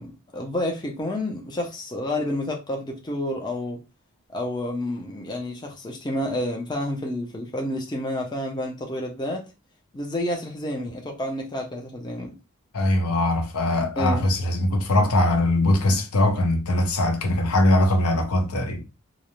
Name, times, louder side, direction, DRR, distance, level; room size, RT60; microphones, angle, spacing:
voice 1, 0.0-3.8 4.3-9.4 9.9-12.3 14.0-14.2, left 1 dB, 20° left, 0.5 m, -29 dB
voice 2, 12.7-18.8, left 1 dB, 85° left, 0.6 m, -21 dB
2.5 x 2.0 x 2.9 m
head